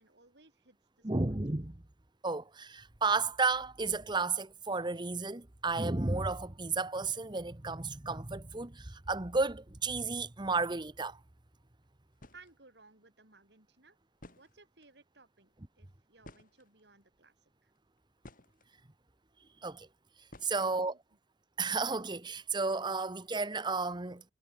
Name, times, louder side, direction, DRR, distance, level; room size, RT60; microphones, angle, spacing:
voice 1, 0.0-1.3 12.3-14.0 14.3-17.7 20.5-21.0, right 3 dB, 70° right, 5.5 m, -61 dB
voice 2, 1.0-1.8 2.2-11.2 19.6-19.9 20.4-20.9 21.6-24.2, right 3 dB, 25° right, 1.1 m, -33 dB
sound 1, 11.8-11.9 12.1-12.5 13.8-13.9 14.1-14.9 16.2-17.0 17.7-18.7 20.3-20.9, left 1 dB, 50° left, 4.2 m, -55 dB
head